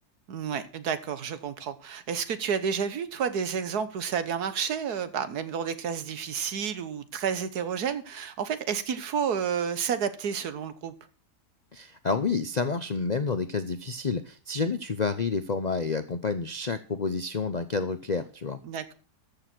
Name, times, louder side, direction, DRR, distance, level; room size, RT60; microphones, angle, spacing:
voice 1, 0.3-10.9 18.6-18.9, right 7 dB, 70° right, 1.6 m, -30 dB
voice 2, 11.7-18.6, left 4 dB, 50° left, 0.5 m, -29 dB
13.5 x 6.8 x 6.1 m
omnidirectional pair, 1.7 m